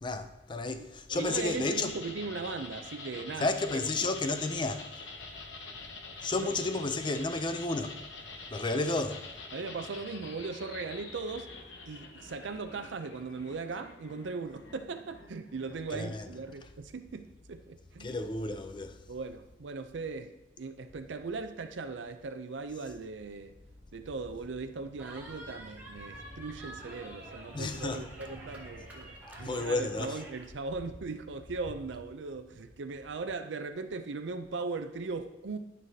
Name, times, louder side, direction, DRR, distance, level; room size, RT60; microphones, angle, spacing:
voice 1, 0.0-1.9 3.4-4.9 6.2-8.0 8.5-9.3 15.9-16.3 18.0-19.0 27.5-28.0 29.4-30.2, left 2 dB, 25° left, 0.4 m, -32 dB
sound 1, 1.1-16.7, left 3 dB, 75° left, 1.0 m, -46 dB
voice 2, 1.1-3.5 4.0-4.1 6.3-6.5 9.5-11.5 11.9-18.2 19.1-23.6 23.9-35.6, right 4 dB, 80° right, 0.5 m, -39 dB
sound 2, 23.1-29.8, right 2 dB, 30° right, 0.8 m, -54 dB
Cheering, 25.0-30.5, right 1 dB, 10° right, 1.5 m, -49 dB
12.5 x 5.4 x 2.8 m
head